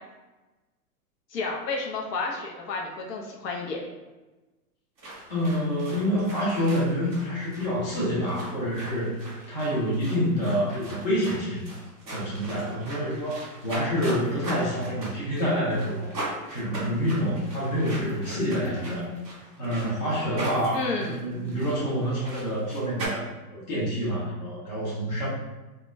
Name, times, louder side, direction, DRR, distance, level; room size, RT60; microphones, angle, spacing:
voice 1, 1.3-3.8 20.7-21.2, left 3 dB, 80° left, -1 dB, 0.8 m, -31 dB
sound 1, 5.0-23.1, right 1 dB, 20° right, 0.6 m, -40 dB
voice 2, 5.3-9.2 9.5-11.6 12.1-16.1 16.5-19.1 19.6-23.2 23.5-25.3, equal, 30° left, -7 dB, 0.5 m, -27 dB
2.3 x 2.2 x 3.1 m, 1.1 s
hypercardioid pair, 175°, 48 cm